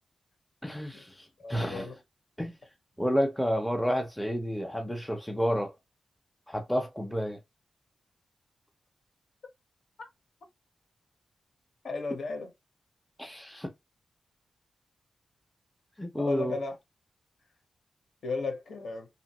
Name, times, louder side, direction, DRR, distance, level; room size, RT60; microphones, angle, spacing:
voice 1, 0.6-1.9 2.4-2.6 3.0-5.7 6.5-7.4 13.2-13.7 16.0-16.6, equal, 5° left, 0.6 m, -30 dB
voice 2, 1.4-1.9 10.0-10.1 11.8-12.5 16.2-16.7 18.2-19.1, left 3 dB, 65° left, 1.1 m, -34 dB
2.8 x 2.4 x 2.9 m
wide cardioid pair, 130°, 0 cm